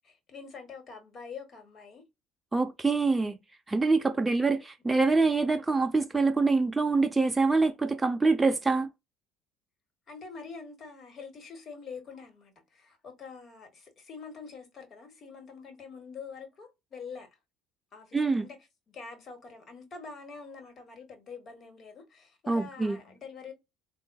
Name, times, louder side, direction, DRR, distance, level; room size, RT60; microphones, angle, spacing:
voice 1, 0.0-2.0 4.2-4.6 10.1-17.3 17.9-18.6 18.9-23.5, left 5 dB, 40° left, 1.4 m, -45 dB
voice 2, 2.5-3.4 3.7-8.9 18.1-18.5 22.5-23.0, right 3 dB, 15° right, 0.4 m, -25 dB
3.8 x 2.3 x 2.2 m
supercardioid pair, 85°, 0 cm